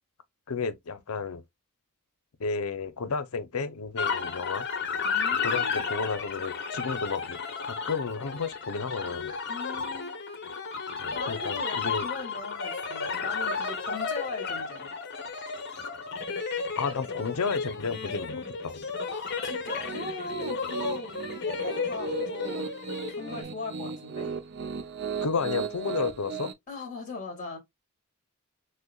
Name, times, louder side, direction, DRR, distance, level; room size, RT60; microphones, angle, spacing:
voice 1, 0.5-1.4 2.4-4.7 5.4-9.3 11.0-12.1 16.8-18.8 25.2-26.5, left 5 dB, 75° left, 0.7 m, -32 dB
sound 1, 4.0-23.4, left 5 dB, 50° left, 0.9 m, -33 dB
voice 2, 5.0-5.9 9.5-10.2 11.1-14.9 19.1-22.7 23.2-24.4 26.7-27.6, left 3 dB, 35° left, 1.9 m, -39 dB
Piano, 19.7-26.5, right 6 dB, 50° right, 0.5 m, -36 dB
6.4 x 2.1 x 2.3 m
head